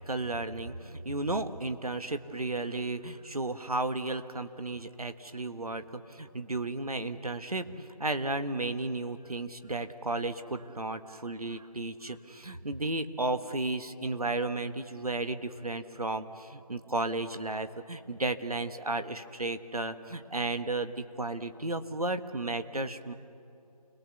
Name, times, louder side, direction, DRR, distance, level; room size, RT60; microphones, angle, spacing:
voice 1, 0.1-23.1, right 2 dB, 65° right, 9 dB, 1.5 m, -34 dB
29.5 x 20.0 x 7.0 m, 2.6 s
figure-of-eight pair, 165°, 20 cm